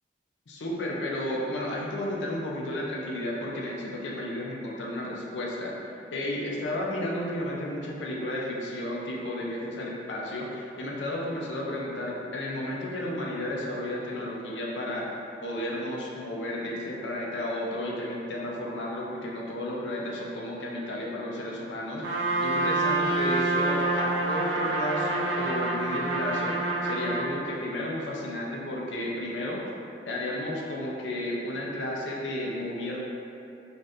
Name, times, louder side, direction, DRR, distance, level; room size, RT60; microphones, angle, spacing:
voice 1, 0.5-5.8 6.1-15.1 15.4-29.6 30.1-33.0, left 1 dB, 75° left, -3 dB, 0.5 m, -33 dB
Trumpet, 22.0-27.3, right 2 dB, 80° right, 0.5 m, -27 dB
2.6 x 2.5 x 3.4 m, 2.7 s
head